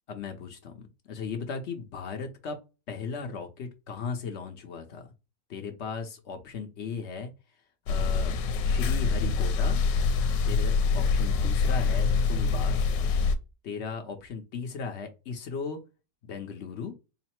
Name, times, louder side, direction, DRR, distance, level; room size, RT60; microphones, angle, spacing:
voice 1, 0.1-2.6 2.9-5.1 5.5-7.3 7.9-9.8 10.5-12.8 13.6-15.8 16.2-16.9, left 5 dB, 55° left, 0.7 m, -37 dB
sound 1, 7.9-13.4, left 4 dB, 80° left, 1.2 m, -25 dB
4.0 x 2.0 x 4.3 m
omnidirectional pair, 2.0 m